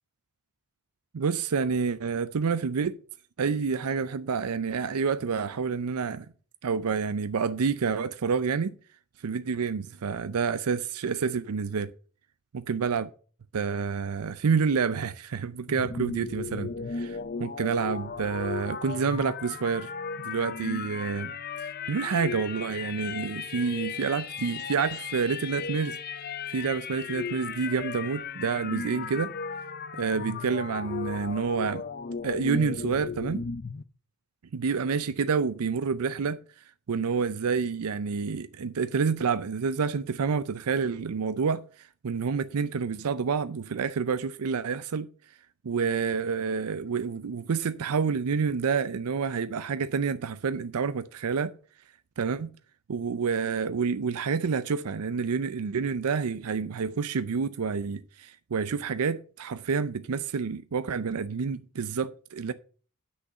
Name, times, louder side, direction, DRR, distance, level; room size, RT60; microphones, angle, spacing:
voice 1, 1.1-3.0 3.4-6.3 6.6-8.7 9.2-11.9 12.5-13.1 13.5-19.9 20.2-21.3 21.6-26.0 26.5-29.3 29.9-31.8 32.2-33.4 34.5-36.4 36.9-45.1 45.6-51.5 52.2-52.5 52.9-62.5, right 5 dB, 85° right, 0.5 m, -28 dB
sound 1, 15.7-33.8, left 5 dB, 45° left, 0.5 m, -36 dB
7.9 x 6.5 x 6.4 m
head